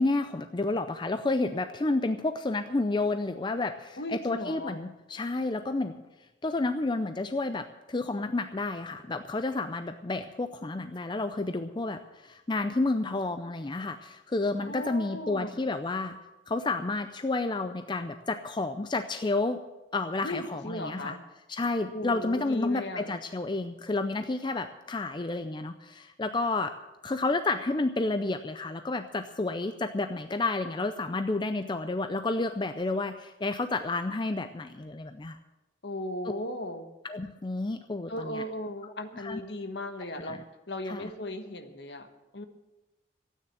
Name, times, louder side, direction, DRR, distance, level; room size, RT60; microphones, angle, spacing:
voice 1, 0.0-6.0 6.4-16.2 16.5-19.6 19.9-21.2 21.5-26.7 27.0-35.4 37.0-38.4 39.2-39.4 40.2-40.4 40.9-41.1, left 2 dB, 25° left, 8 dB, 0.4 m, -30 dB
voice 2, 4.0-4.8 14.6-15.6 20.2-21.2 21.9-23.1 35.8-36.9 38.1-40.4 40.7-42.1 42.3-42.4, left 1 dB, 60° left, 7 dB, 1.3 m, -37 dB
13.0 x 9.4 x 7.9 m, 1.1 s
head